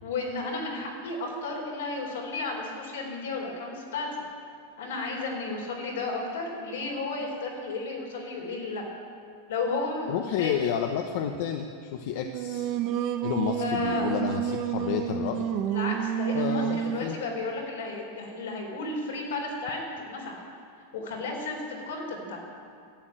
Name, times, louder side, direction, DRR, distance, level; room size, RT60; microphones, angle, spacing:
voice 1, 0.0-4.1 4.8-8.8 9.5-10.5 13.6-14.1 15.7-20.4 20.9-22.4, left 3 dB, 85° left, -1 dB, 4.2 m, -33 dB
voice 2, 10.1-12.7 13.2-15.5 16.3-17.2, left 9 dB, 60° left, 4 dB, 0.9 m, -30 dB
Singing, 12.2-17.1, right 10 dB, 45° right, 0.7 m, -29 dB
12.0 x 8.9 x 8.9 m, 2.4 s
supercardioid pair, 140°, 0 cm